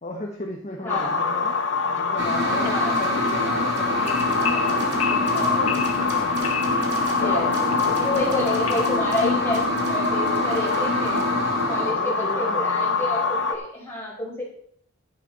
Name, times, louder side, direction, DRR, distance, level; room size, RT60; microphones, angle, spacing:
voice 1, 0.0-1.6 1.9-6.9 7.6-8.8 11.6-12.6, left 1 dB, 35° left, 0 dB, 1.2 m, -36 dB
sound 1, 0.9-13.5, left 4 dB, 60° left, 1.2 m, -25 dB
sound 2, 2.2-11.9, equal, 55° right, 2.6 m, -28 dB
voice 2, 2.4-3.0 7.1-7.5 7.9-9.6 9.9-14.4, left 1 dB, 10° left, -7 dB, 5.4 m, -29 dB
sound 3, 2.5-8.9, left 6 dB, 90° left, 1.6 m, -35 dB
11.5 x 10.0 x 4.2 m, 0.66 s
head